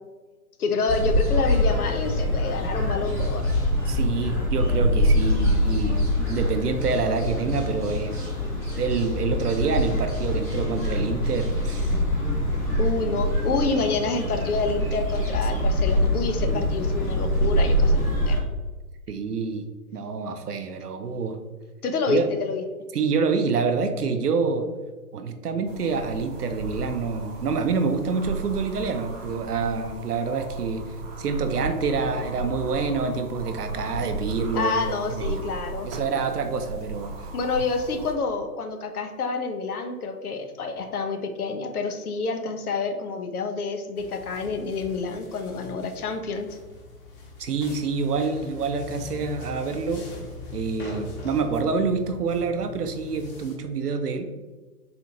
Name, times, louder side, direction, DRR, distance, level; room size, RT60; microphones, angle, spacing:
voice 1, 0.6-3.7 12.8-18.4 21.8-22.6 34.5-35.9 37.3-46.6, left 4 dB, 70° left, 5 dB, 0.7 m, -28 dB
sound 1, 0.9-18.4, left 1 dB, 5° left, 0.6 m, -24 dB
voice 2, 3.9-8.3 8.8-11.9 16.4-16.7 19.1-19.6 19.9-21.4 22.1-22.3 22.9-24.7 25.1-30.8 31.2-34.7 35.2-35.4 35.8-37.3 47.4-50.1 50.5-54.3, right 5 dB, 80° right, 8 dB, 0.6 m, -27 dB
sound 2, 25.6-38.1, right 2 dB, 25° right, 0.9 m, -35 dB
sound 3, 44.0-53.5, left 4 dB, 35° left, 0.9 m, -41 dB
4.1 x 2.7 x 2.8 m, 1.3 s
figure-of-eight pair, 120°, 46 cm